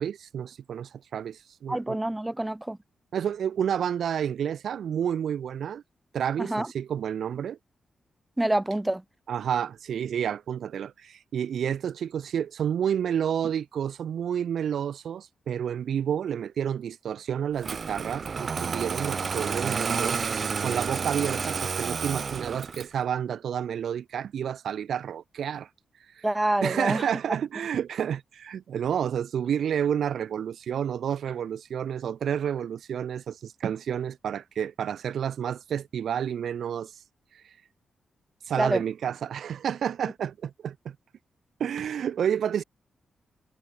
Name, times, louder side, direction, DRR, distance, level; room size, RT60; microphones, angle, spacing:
voice 1, 0.0-2.0 3.1-5.8 6.1-7.6 9.3-20.2 20.6-25.7 26.2-26.3 26.6-36.9 37.3-37.4 38.5-40.9 41.6-42.6, right 8 dB, 75° right, 0.8 m, -30 dB
voice 2, 1.7-2.8 6.4-6.7 8.4-9.0 26.2-27.1 38.6-38.8, right 1 dB, 10° right, 1.9 m, -27 dB
Engine starting, 17.6-23.0, right 5 dB, 45° right, 0.7 m, -30 dB
wide cardioid pair, 120°, 0 cm